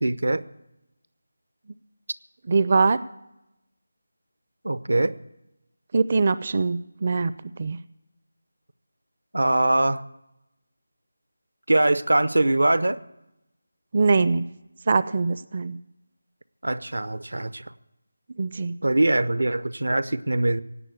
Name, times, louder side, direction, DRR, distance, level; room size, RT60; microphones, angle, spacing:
voice 1, 0.0-0.4 4.6-5.2 9.3-10.0 11.7-13.0 16.6-17.7 18.8-20.6, right 2 dB, 85° right, 16 dB, 0.8 m, -22 dB
voice 2, 2.5-3.0 5.9-7.3 7.6-7.8 13.9-14.5 14.9-15.8 18.4-18.7, right 4 dB, 40° right, 16 dB, 0.5 m, -22 dB
17.0 x 8.8 x 8.4 m, 0.90 s
figure-of-eight pair, 165°, 0 cm